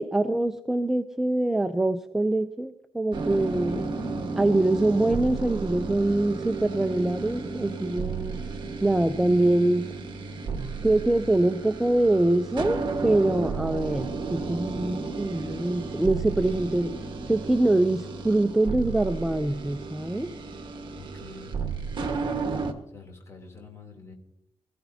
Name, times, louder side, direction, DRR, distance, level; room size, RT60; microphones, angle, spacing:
voice 1, 0.0-3.9 4.4-8.4 8.8-9.9 10.8-16.9 17.3-20.3, right 2 dB, 5° right, 8 dB, 0.4 m, -24 dB
sound 1, 3.1-22.7, right 4 dB, 45° right, 1.5 m, -33 dB
voice 2, 21.0-21.6 22.9-24.1, left 3 dB, 25° left, 1 dB, 3.1 m, -46 dB
23.5 x 14.5 x 2.8 m, 0.81 s
wide cardioid pair, 175°, 11 cm